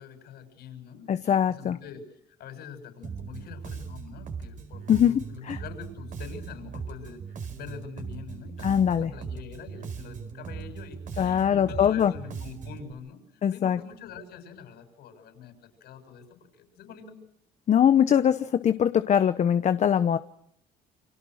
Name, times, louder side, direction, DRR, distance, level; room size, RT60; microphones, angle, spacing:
voice 1, 0.0-7.2 7.5-13.2 13.5-17.2, left 7 dB, 70° left, 7 dB, 7.3 m, -44 dB
voice 2, 1.1-1.8 4.9-5.1 5.5-5.6 8.6-9.1 11.2-12.1 13.4-13.8 17.7-20.2, left 9 dB, 45° left, 11 dB, 0.9 m, -22 dB
Bass guitar, 3.0-12.9, right 6 dB, 50° right, 4.7 m, -39 dB
29.5 x 25.0 x 6.4 m, 0.75 s
cardioid pair, 110°, 17 cm